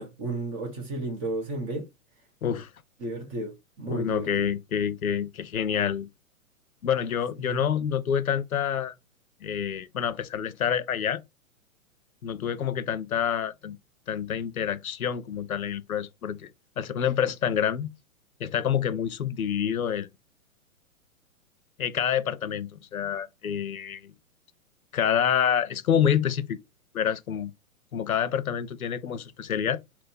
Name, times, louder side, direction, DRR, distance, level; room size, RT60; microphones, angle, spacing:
voice 1, 0.0-1.9 3.0-4.5 7.4-7.6, right 2 dB, 35° right, 0.9 m, -33 dB
voice 2, 3.9-6.1 6.8-8.9 9.4-11.2 12.2-13.8 14.1-16.5 16.8-17.9 18.4-20.1 21.8-24.1 24.9-26.6 26.9-27.5 27.9-29.8, left 8 dB, 85° left, 0.6 m, -27 dB
4.1 x 2.1 x 4.1 m
figure-of-eight pair, 110°, 42 cm